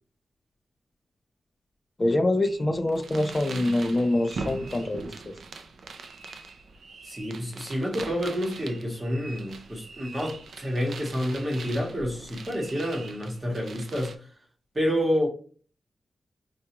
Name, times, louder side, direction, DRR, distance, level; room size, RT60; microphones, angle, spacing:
voice 1, 2.0-5.3, left 1 dB, 25° left, 0.4 m, -25 dB
sound 1, 2.4-14.1, right 4 dB, 70° right, 0.4 m, -42 dB
voice 2, 7.0-14.1 14.7-15.3, equal, 15° right, 1.0 m, -29 dB
4.7 x 2.2 x 2.8 m
wide cardioid pair, 160°, 0 cm